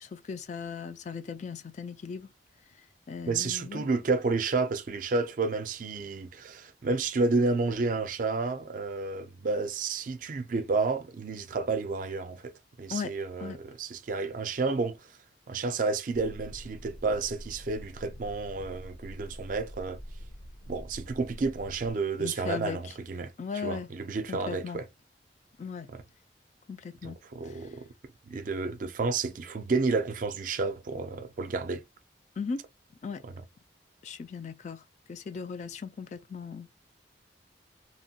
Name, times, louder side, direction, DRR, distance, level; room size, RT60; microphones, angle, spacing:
voice 1, 0.0-2.3 3.1-3.9 12.9-13.1 13.4-13.6 22.2-22.8 23.4-23.9 24.3-24.8 25.6-25.9 26.7-27.2 27.4-27.5 32.4-32.6 33.0-33.2 34.0-34.8 35.1-36.7, left 5 dB, 40° left, 0.3 m, -37 dB
voice 2, 3.3-12.5 12.8-15.0 15.5-20.0 20.7-24.9 25.9-26.0 27.0-27.9 28.3-31.8 33.2-33.3, right 3 dB, 45° right, 0.4 m, -31 dB
sound 1, 16.1-21.9, equal, 70° left, 0.7 m, -45 dB
2.9 x 2.1 x 2.7 m
head